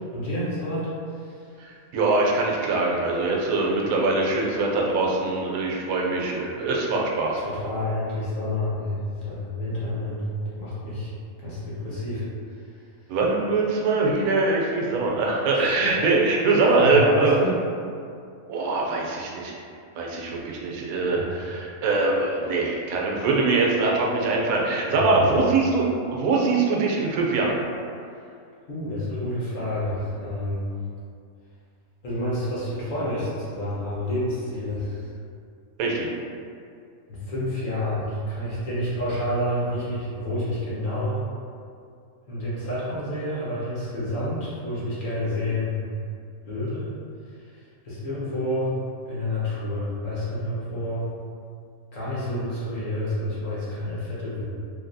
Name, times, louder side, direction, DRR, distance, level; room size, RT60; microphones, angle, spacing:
voice 1, 0.1-1.5 7.4-10.2 10.6-11.1 11.4-12.3 12.6-12.8 15.5-16.0 16.8-17.6 21.1-21.3 24.9-25.3 28.7-30.6 32.0-35.1 37.1-41.2 42.3-45.8 46.5-46.9 47.3-48.8 49.1-51.1 51.9-54.4, left 1 dB, 40° left, -9 dB, 0.9 m, -29 dB
voice 2, 1.6-7.4 13.1-17.4 18.5-19.5 19.9-25.8 26.1-27.6 35.8-36.1, right 3 dB, 75° right, -2 dB, 1.0 m, -23 dB
3.2 x 2.7 x 2.6 m, 2.4 s
omnidirectional pair, 1.5 m